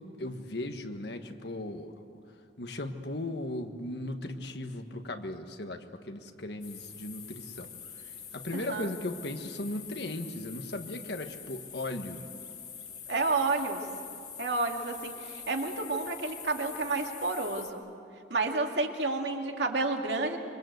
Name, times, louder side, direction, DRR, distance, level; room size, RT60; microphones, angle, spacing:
voice 1, 0.0-2.2 2.6-7.7 8.0-12.2, left 1 dB, 65° left, 6 dB, 1.6 m, -37 dB
sound 1, 6.6-17.7, left 7 dB, 40° left, 2.6 m, -45 dB
voice 2, 8.5-8.9 13.1-13.8 14.4-17.8 18.3-20.4, right 3 dB, 75° right, 2 dB, 2.4 m, -30 dB
26.0 x 24.5 x 8.0 m, 2.5 s
head